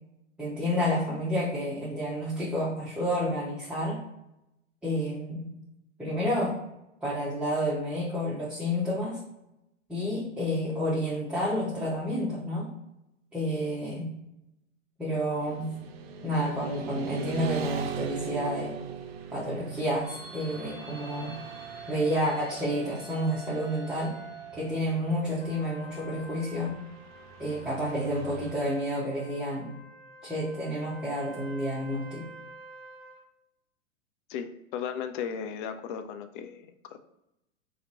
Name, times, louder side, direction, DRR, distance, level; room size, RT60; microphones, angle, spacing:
voice 1, 0.4-4.0 4.8-5.5 6.0-6.6 7.0-9.2 9.9-12.7 13.3-14.1 15.0-15.7 16.2-18.7 19.3-21.3 21.9-24.1 24.6-26.7 27.4-29.7 30.2-32.2, equal, 5° right, -9 dB, 0.7 m, -30 dB
Motorcycle / Traffic noise roadway noise, 15.4-28.5, right 6 dB, 55° right, 0.5 m, -41 dB
sound 1, 20.0-25.4, right 5 dB, 30° right, 1.2 m, -45 dB
Trumpet, 25.4-33.2, equal, 75° left, 1.0 m, -49 dB
voice 2, 34.3-37.0, left 7 dB, 45° left, 8 dB, 0.4 m, -36 dB
2.8 x 2.6 x 3.9 m, 0.88 s
hypercardioid pair, 105°, 38 cm